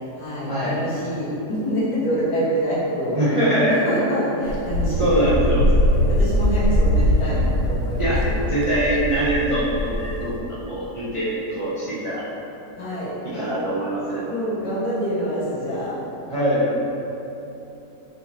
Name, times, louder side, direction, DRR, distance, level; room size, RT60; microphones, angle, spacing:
voice 1, 0.2-3.2 3.7-8.4 12.8-13.2 14.3-15.9, equal, 85° left, -10 dB, 2.0 m, -26 dB
voice 2, 3.1-3.8 4.8-5.6 8.0-8.2 8.5-10.3 10.6-12.2 13.3-14.3 16.3-16.6, right 1 dB, 40° right, -10 dB, 0.4 m, -23 dB
Wind, 4.5-10.4, equal, 70° right, 1.0 m, -21 dB
4.5 x 4.3 x 2.8 m, 3.0 s
omnidirectional pair, 1.7 m